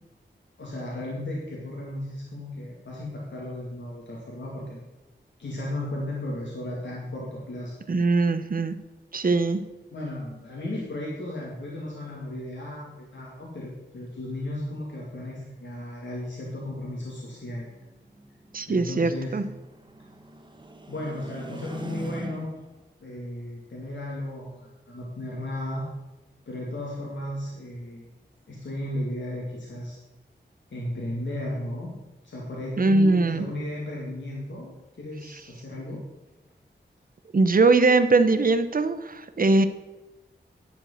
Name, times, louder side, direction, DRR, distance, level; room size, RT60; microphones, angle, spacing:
voice 1, 0.6-4.9 5.4-7.7 9.2-9.5 9.9-17.7 18.7-19.4 20.9-22.5 23.0-25.9 26.5-28.0 28.5-30.0 30.7-31.9 32.2-36.0, left 1 dB, 85° left, -4 dB, 2.2 m, -35 dB
voice 2, 7.9-8.8 9.1-9.6 18.5-19.4 32.8-33.5 37.3-39.7, right 3 dB, 50° right, 11 dB, 0.8 m, -21 dB
sound 1, 17.4-22.8, right 1 dB, 25° right, 1.0 m, -42 dB
10.5 x 5.0 x 7.7 m, 1.1 s
wide cardioid pair, 60°, 19 cm